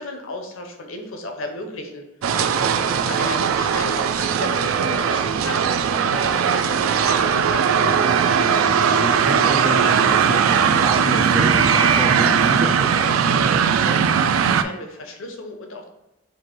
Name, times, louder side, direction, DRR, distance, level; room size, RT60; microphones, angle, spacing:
voice 1, 0.0-2.1 2.6-7.8 13.2-15.9, left 2 dB, 85° left, 4 dB, 0.8 m, -34 dB
sound 1, 2.2-14.6, right 7 dB, 90° right, 0.3 m, -19 dB
voice 2, 2.3-2.7 8.4-13.0, right 1 dB, 5° right, 2 dB, 0.3 m, -29 dB
4.5 x 2.5 x 4.4 m, 0.99 s
head